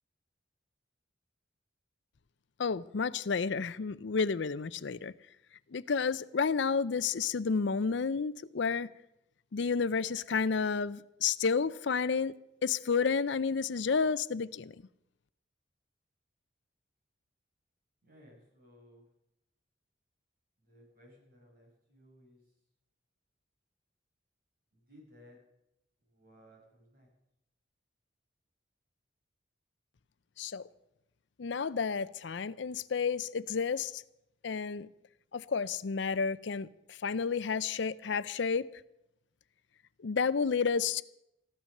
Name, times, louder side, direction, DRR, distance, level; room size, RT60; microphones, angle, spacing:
voice 1, 2.6-5.1 5.7-8.9 9.5-12.3 12.6-14.7 30.4-30.6 31.4-34.0 34.4-34.9 35.3-38.7 40.0-41.0, left 5 dB, 65° left, 17 dB, 0.5 m, -31 dB
voice 2, 18.0-19.1 20.6-22.4 24.7-25.4 26.0-27.1, equal, 45° right, -2 dB, 6.2 m, -59 dB
14.5 x 12.0 x 6.5 m, 0.84 s
head